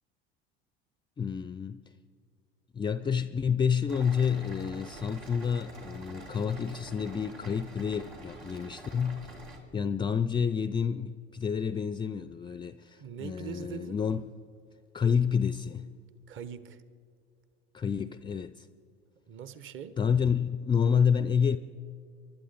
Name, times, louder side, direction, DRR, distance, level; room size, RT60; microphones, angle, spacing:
voice 1, 1.2-1.8 2.7-9.3 9.7-14.2 14.9-15.9 17.7-18.7 20.0-21.6, left 7 dB, 15° left, 0.4 m, -29 dB
sound 1, 3.9-9.6, right 2 dB, 85° right, 3.0 m, -47 dB
voice 2, 13.0-14.0 16.3-16.8 19.3-20.0, right 8 dB, 40° right, 1.0 m, -42 dB
28.5 x 12.0 x 4.0 m
figure-of-eight pair, 70°, 32 cm